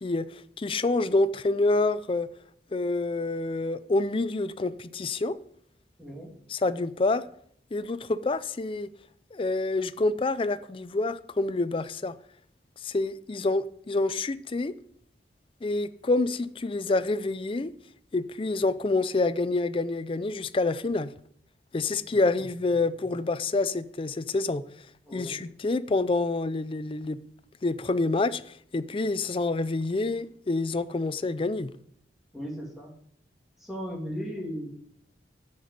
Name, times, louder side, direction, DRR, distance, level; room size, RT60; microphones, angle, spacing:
voice 1, 0.0-2.3 2.7-5.4 6.5-7.2 7.7-8.9 9.3-12.1 12.8-14.7 15.6-17.7 18.1-21.1 21.7-24.6 25.1-27.2 27.6-31.7, left 2 dB, 30° left, 0.4 m, -27 dB
voice 2, 6.0-6.3 22.1-22.4 25.1-25.4 32.3-32.9 33.6-34.7, equal, ahead, 2.2 m, -37 dB
9.5 x 5.2 x 7.9 m
head